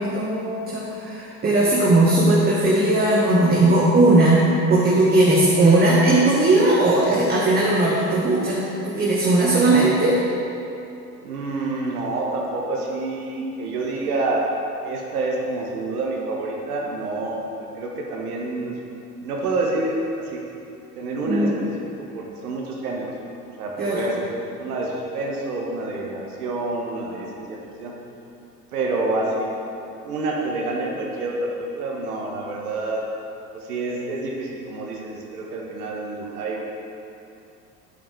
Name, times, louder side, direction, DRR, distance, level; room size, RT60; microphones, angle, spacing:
voice 1, 0.0-10.2 21.2-21.5 23.8-24.0, right 2 dB, 20° right, -6 dB, 1.5 m, -18 dB
voice 2, 11.2-14.5 14.8-18.8 19.2-20.4 21.0-23.1 23.6-27.9 28.7-29.5 30.0-33.1 33.5-36.6, right 2 dB, 65° right, -1 dB, 1.4 m, -28 dB
11.5 x 8.7 x 3.3 m, 2.7 s
figure-of-eight pair, 75°, 48 cm